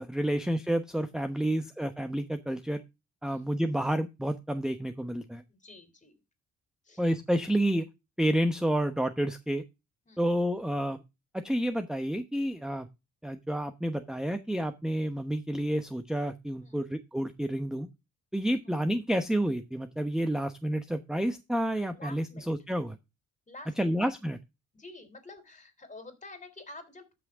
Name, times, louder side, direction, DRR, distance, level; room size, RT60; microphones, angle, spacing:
voice 1, 0.0-2.8 3.2-5.4 7.0-7.8 8.2-9.6 10.2-11.0 11.3-12.9 13.2-17.9 18.3-23.0 23.8-24.4, right 1 dB, ahead, 9 dB, 1.0 m, -29 dB
voice 2, 3.2-3.6 5.5-6.2 6.8-7.0 10.0-10.3 16.6-16.9 18.6-18.7 21.9-22.5 23.5-24.0 24.7-27.1, left 2 dB, 25° left, 10 dB, 3.4 m, -49 dB
13.5 x 6.2 x 3.6 m, 0.25 s
cardioid pair, 90°, 30 cm